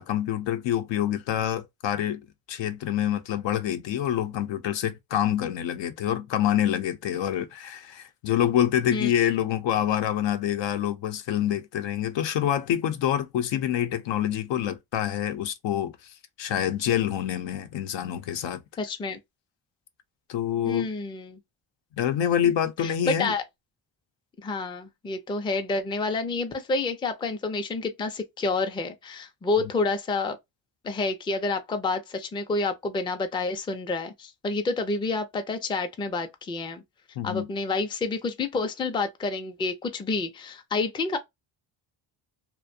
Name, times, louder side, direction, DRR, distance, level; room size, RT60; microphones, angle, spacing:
voice 1, 0.0-2.2 2.5-18.6 20.3-20.9 22.0-23.3 29.6-29.7 37.2-37.5, left 10 dB, 85° left, 0.6 m, -26 dB
voice 2, 18.8-19.2 20.6-21.4 22.4-22.5 22.8-23.4 24.4-30.4 30.8-36.8 37.2-41.2, left 3 dB, 10° left, 0.3 m, -29 dB
2.5 x 2.1 x 2.6 m
cardioid pair, 100°, 43 cm